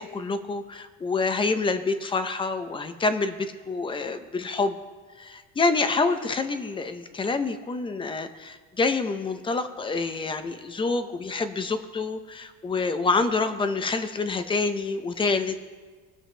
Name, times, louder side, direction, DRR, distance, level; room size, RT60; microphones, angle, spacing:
voice 1, 0.0-4.8 5.2-15.6, left 3 dB, 15° left, 10 dB, 0.6 m, -27 dB
21.0 x 7.1 x 3.3 m, 1.4 s
cardioid pair, 150°, 34 cm